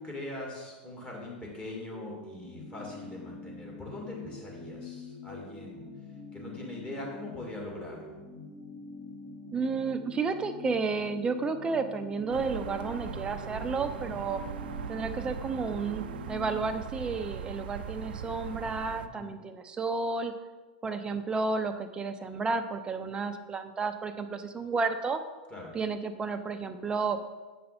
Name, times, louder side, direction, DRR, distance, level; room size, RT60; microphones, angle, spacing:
voice 1, 0.0-5.8 6.3-8.2 19.0-19.3 25.5-25.7, left 2 dB, 20° left, -2 dB, 2.4 m, -41 dB
sound 1, 1.9-16.7, left 3 dB, 40° left, 1.9 m, -45 dB
voice 2, 9.5-14.4 14.9-20.3 20.8-25.2 25.7-27.2, right 4 dB, 15° right, 7 dB, 0.6 m, -32 dB
sound 2, 12.3-19.1, right 7 dB, 75° right, 0.5 m, -39 dB
7.7 x 5.4 x 4.3 m, 1.3 s
hypercardioid pair, 115°, 5 cm